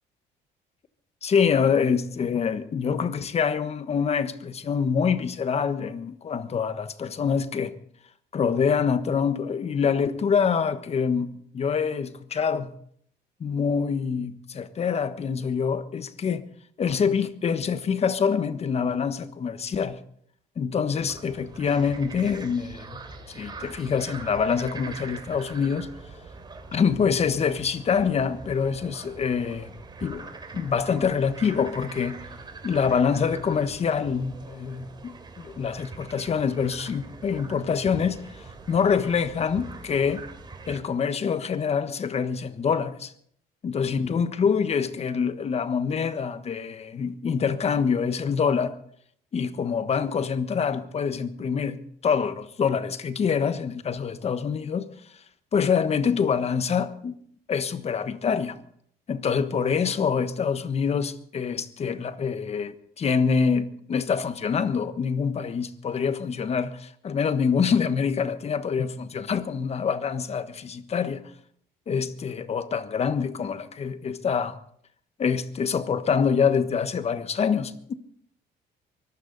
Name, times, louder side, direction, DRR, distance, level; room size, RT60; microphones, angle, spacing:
voice 1, 1.2-7.7 8.3-11.3 11.5-12.7 13.4-16.4 16.8-20.0 20.6-23.0 23.3-25.9 26.7-29.7 30.0-30.2 30.5-32.2 32.6-38.2 38.7-40.2 40.7-43.1 43.6-48.7 49.3-54.9 55.5-57.2 57.5-58.6 59.1-71.2 71.9-74.6 75.2-77.9, left 6 dB, 40° left, 1.3 m, -25 dB
sound 1, 21.1-40.8, right 4 dB, 25° right, 3.0 m, -43 dB
24.0 x 14.5 x 4.1 m
cardioid pair, 110°, 17 cm